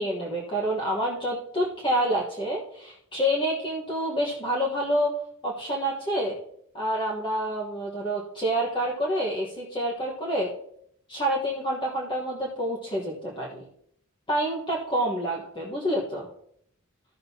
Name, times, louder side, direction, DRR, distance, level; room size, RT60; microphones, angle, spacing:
voice 1, 0.0-5.1 5.4-6.4 6.7-10.5 11.1-13.6 14.3-16.3, equal, 25° left, -3 dB, 1.3 m, -28 dB
14.5 x 6.5 x 2.8 m, 0.69 s
head